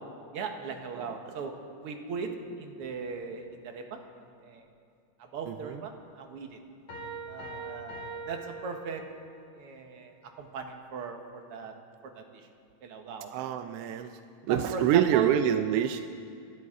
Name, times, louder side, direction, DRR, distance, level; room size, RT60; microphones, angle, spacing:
voice 1, 0.3-2.3 2.6-4.0 4.4-4.6 5.2-6.6 7.3-9.0 9.6-11.7 12.0-12.5 12.8-13.3 14.4-15.3, right 5 dB, 55° right, 4 dB, 2.0 m, -38 dB
voice 2, 5.5-5.8 13.3-14.1 14.5-16.0, right 10 dB, 80° right, 8 dB, 1.4 m, -26 dB
sound 1, 6.9-9.4, right 3 dB, 70° left, 5.2 m, -41 dB
29.5 x 12.5 x 3.7 m, 2.4 s
omnidirectional pair, 3.3 m